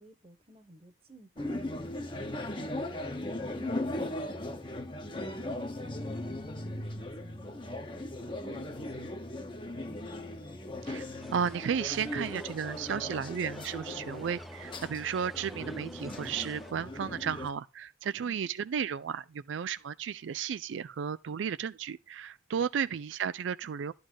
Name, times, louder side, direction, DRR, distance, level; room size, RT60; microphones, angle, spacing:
voice 1, 0.0-2.0 2.6-4.6 5.1-8.0 8.4-10.2 18.1-18.4 22.8-23.0, right 2 dB, 30° right, 1.3 m, -54 dB
sound 1, 1.4-17.5, left 1 dB, 25° left, 1.0 m, -38 dB
voice 2, 10.8-23.9, right 7 dB, 85° right, 0.4 m, -34 dB
sound 2, 11.2-16.7, equal, ahead, 0.7 m, -49 dB
11.5 x 4.1 x 6.3 m
head